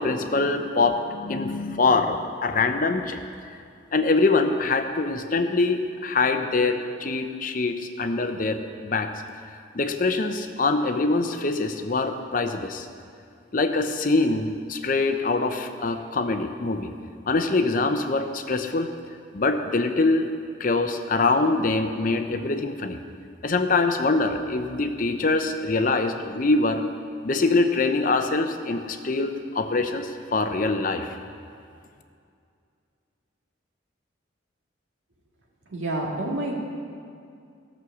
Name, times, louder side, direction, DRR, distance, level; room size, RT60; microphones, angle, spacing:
voice 1, 0.0-3.2 3.9-9.1 9.7-12.9 13.5-16.9 17.3-18.9 19.3-20.3 20.6-23.0 23.4-26.8 27.2-31.2, left 3 dB, 40° left, 7 dB, 0.6 m, -24 dB
voice 2, 35.7-36.6, right 1 dB, 80° right, -2 dB, 2.1 m, -28 dB
14.0 x 6.3 x 7.2 m, 2.4 s
head